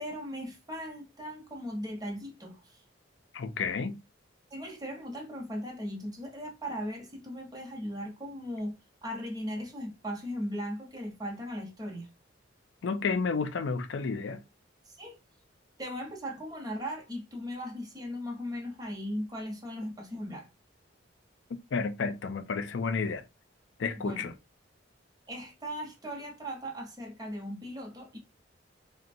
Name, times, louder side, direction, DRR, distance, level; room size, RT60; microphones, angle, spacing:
voice 1, 0.0-2.8 4.5-8.8 9.0-12.1 15.0-15.2 15.8-20.5 24.0-24.3 25.3-28.2, equal, 20° right, 0.8 m, -38 dB
voice 2, 3.3-4.0 12.8-14.4 21.7-23.2 23.8-24.3, left 5 dB, 70° left, 0.4 m, -31 dB
3.8 x 2.2 x 2.5 m
head